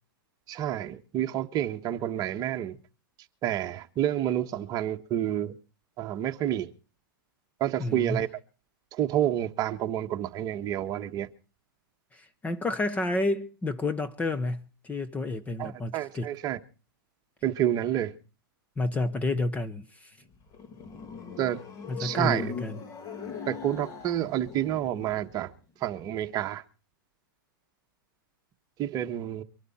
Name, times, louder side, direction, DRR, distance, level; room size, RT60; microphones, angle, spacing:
voice 1, 0.5-2.8 3.4-5.5 6.0-6.7 7.6-8.3 8.9-11.3 15.6-16.6 17.4-18.1 21.4-21.6 22.0-22.5 23.4-25.5 25.8-26.6 28.8-29.4, right 11 dB, 30° right, 1.4 m, -29 dB
voice 2, 7.8-8.2 12.1-16.3 18.8-20.2 21.9-22.8, left 2 dB, 10° left, 1.0 m, -30 dB
sound 1, 20.2-25.5, left 5 dB, 30° left, 2.3 m, -41 dB
24.0 x 11.5 x 4.3 m
hypercardioid pair, 130°, 12 cm